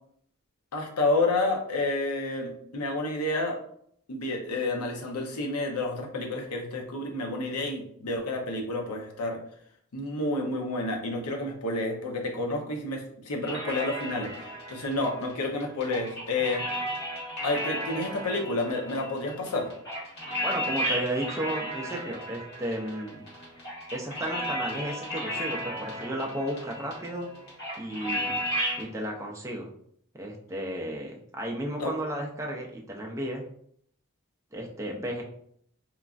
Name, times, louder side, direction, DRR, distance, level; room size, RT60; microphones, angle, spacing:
voice 1, 0.7-3.6 4.1-9.4 9.9-16.6 17.4-19.7 31.8-31.9, left 2 dB, 90° left, 2 dB, 0.6 m, -30 dB
sound 1, 13.4-28.8, equal, 50° left, 1.3 m, -34 dB
voice 2, 20.4-23.2 23.9-27.3 27.8-28.3 28.8-29.7 30.1-33.4 34.5-35.2, right 1 dB, 15° right, 0 dB, 0.3 m, -33 dB
3.0 x 2.4 x 2.4 m, 0.67 s
head